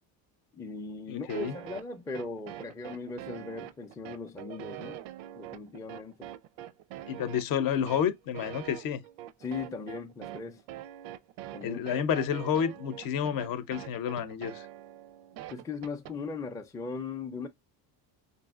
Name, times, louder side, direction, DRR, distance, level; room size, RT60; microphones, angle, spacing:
voice 1, 0.5-5.0 5.3-6.3 9.4-10.6 11.5-11.8 15.5-17.5, left 4 dB, 10° left, 0.4 m, -38 dB
voice 2, 1.1-1.5 7.1-9.0 11.6-14.6, left 8 dB, 55° left, 0.7 m, -30 dB
sound 1, 1.3-16.1, right 12 dB, 85° right, 0.6 m, -44 dB
5.2 x 2.6 x 2.3 m
cardioid pair, 135°, 41 cm